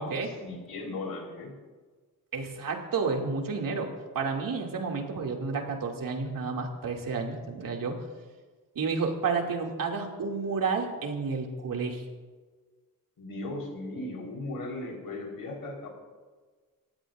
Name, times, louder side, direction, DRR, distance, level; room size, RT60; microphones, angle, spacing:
voice 1, 0.0-1.5 13.2-15.9, left 2 dB, 75° left, 0 dB, 4.4 m, -37 dB
voice 2, 2.3-3.9 4.1-8.0 8.7-12.0, right 4 dB, 75° right, 1 dB, 2.6 m, -31 dB
29.0 x 15.5 x 2.6 m, 1.4 s
wide cardioid pair, 135°, 34 cm